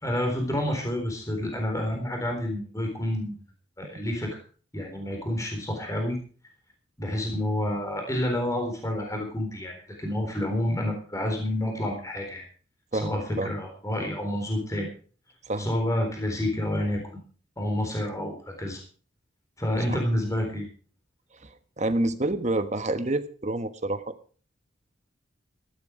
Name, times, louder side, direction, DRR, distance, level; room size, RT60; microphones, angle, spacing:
voice 1, 0.0-3.3 3.8-4.4 4.7-6.2 7.0-12.5 12.9-14.9 15.6-17.2 17.6-18.8 19.6-20.7, left 1 dB, 15° left, 2 dB, 3.8 m, -29 dB
voice 2, 12.9-13.5 15.4-15.7 19.9-20.0 21.4-24.1, right 2 dB, 35° right, 10 dB, 1.2 m, -28 dB
15.5 x 11.5 x 4.9 m, 0.42 s
head